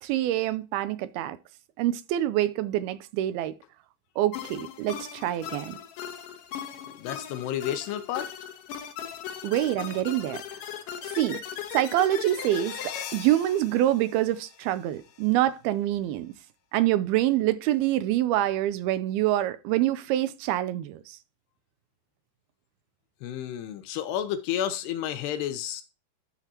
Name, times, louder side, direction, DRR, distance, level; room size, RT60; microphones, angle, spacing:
voice 1, 0.0-1.4 1.8-3.6 4.2-5.8 9.4-10.4 11.0-11.4 11.7-16.3 16.7-21.2, right 13 dB, 80° right, 2.4 m, -26 dB
sound 1, 4.3-14.7, left 9 dB, 70° left, 2.3 m, -38 dB
voice 2, 7.0-8.3 23.2-25.8, left 10 dB, 85° left, 3.0 m, -31 dB
12.5 x 5.8 x 2.9 m
omnidirectional pair, 4.7 m